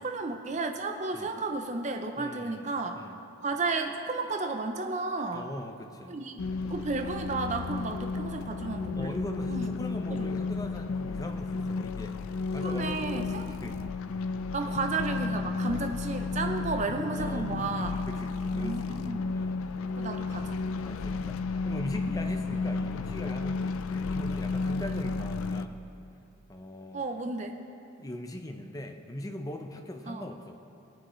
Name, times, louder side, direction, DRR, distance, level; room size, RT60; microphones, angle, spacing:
voice 1, 0.0-3.1 3.4-5.5 6.1-6.3 6.6-9.2 9.5-9.7 10.1-10.3 12.6-13.7 14.5-18.0 18.5-19.3 20.0-20.6 26.9-27.6 30.1-30.3, right 3 dB, 35° right, 5 dB, 0.5 m, -33 dB
voice 2, 2.2-2.7 3.0-3.2 5.3-6.2 8.9-13.8 14.1-14.3 14.6-14.8 16.6-16.7 17.1-17.5 18.0-19.7 20.3-20.5 20.8-25.8 26.5-27.0 28.0-30.6, left 1 dB, 15° left, 4 dB, 0.6 m, -41 dB
sound 1, 6.4-25.7, left 3 dB, 85° left, 0.4 m, -33 dB
19.0 x 8.9 x 3.1 m, 2.7 s
head